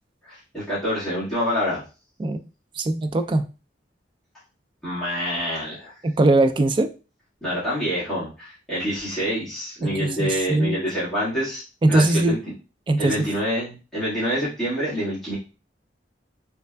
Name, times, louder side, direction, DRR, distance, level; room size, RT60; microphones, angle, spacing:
voice 1, 0.2-1.8 4.8-6.0 7.4-11.6 11.9-12.4 13.0-15.3, equal, ahead, -13 dB, 1.6 m, -27 dB
voice 2, 2.8-3.4 6.0-6.9 9.8-10.8 11.8-12.4 12.9-13.3, right 2 dB, 30° right, 8 dB, 0.3 m, -20 dB
3.4 x 3.3 x 2.2 m, 0.33 s
head